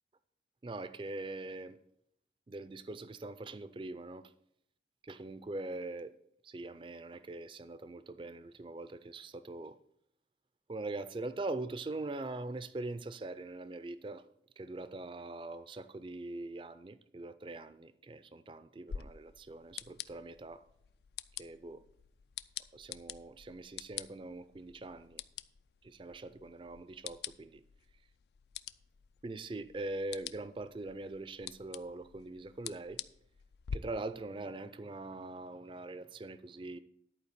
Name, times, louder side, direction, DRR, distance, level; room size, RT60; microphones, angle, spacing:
voice 1, 0.6-1.8 2.5-4.3 5.0-6.1 6.4-9.8 10.7-14.3 14.6-20.6 21.4-21.8 22.7-25.2 25.8-27.6 29.2-33.0 33.7-36.8, right 2 dB, 30° right, 0.4 m, -42 dB
sound 1, 18.9-33.8, left 9 dB, 65° left, 0.3 m, -47 dB
11.0 x 4.6 x 6.7 m
head